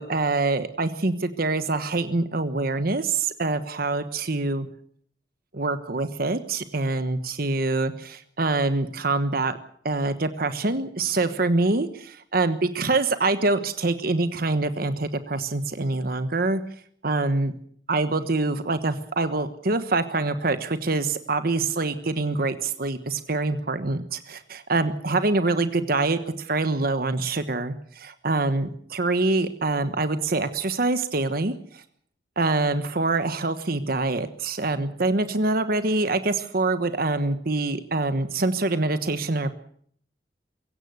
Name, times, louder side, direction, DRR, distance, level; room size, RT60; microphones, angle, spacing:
voice 1, 0.0-4.7 5.5-9.6 9.8-16.6 17.0-17.5 17.9-31.8 32.4-39.5, right 3 dB, 55° right, 10 dB, 1.3 m, -25 dB
23.0 x 16.5 x 8.0 m, 0.62 s
head